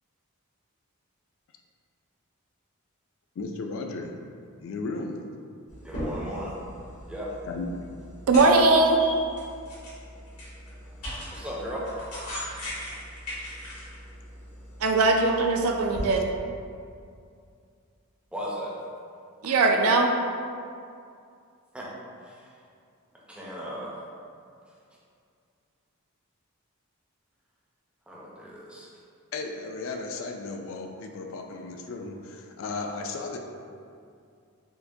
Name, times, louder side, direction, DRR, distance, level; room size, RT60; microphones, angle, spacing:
voice 1, 3.4-4.1 4.6-5.2 7.5-7.9 12.8-13.0 15.9-16.2 29.3-33.4, left 3 dB, 60° left, 3 dB, 0.3 m, -35 dB
sound 1, 5.7-16.0, equal, 90° left, 1.4 m, -39 dB
voice 2, 5.8-6.6 7.1-7.3 11.3-11.9 18.3-18.7 21.7-21.9 22.2-22.6 23.3-24.0 28.1-28.9, equal, 5° right, -6 dB, 0.5 m, -36 dB
voice 3, 8.3-9.0 14.8-16.3 19.4-20.2, right 3 dB, 70° right, 2 dB, 0.3 m, -20 dB
4.5 x 2.1 x 2.6 m, 2.4 s
head